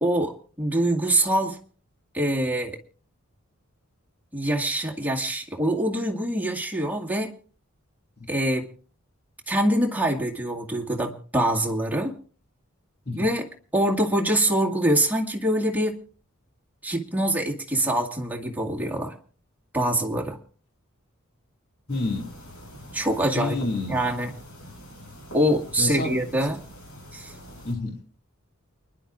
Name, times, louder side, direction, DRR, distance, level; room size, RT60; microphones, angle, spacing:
voice 1, 0.0-1.6 2.1-2.8 4.3-7.3 8.3-8.7 9.5-12.2 13.1-13.5 13.7-16.0 16.8-19.1 19.7-20.4 22.9-23.6 23.9-24.3 25.3-26.6 27.1-27.3, right 1 dB, 10° right, 1.9 m, -24 dB
sound 1, 21.9-27.7, equal, 80° left, 5.9 m, -44 dB
voice 2, 21.9-22.3 23.4-24.0 25.8-26.2 27.6-28.0, left 2 dB, 50° left, 2.4 m, -28 dB
29.5 x 10.5 x 2.5 m
head